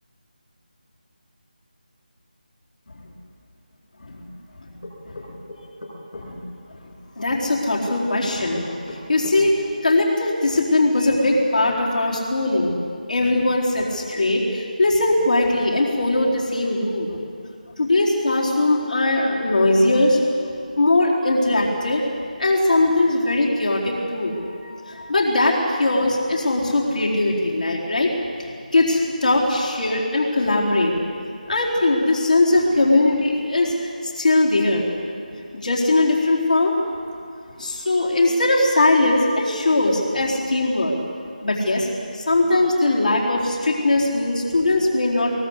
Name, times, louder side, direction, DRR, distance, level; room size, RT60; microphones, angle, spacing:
sound 1, 4.8-6.3 7.8-9.4, left 2 dB, 75° left, 7.8 m, -37 dB
voice 1, 6.1-6.4 6.8-12.8 13.1-17.2 17.8-20.2 20.8-22.0 22.4-28.1 28.4-31.0 31.5-34.9 35.6-36.7 37.6-41.0 41.4-45.3, left 2 dB, 60° left, -3 dB, 4.3 m, -20 dB
22.0 x 21.0 x 8.2 m, 2.3 s
figure-of-eight pair, 160°, 5 cm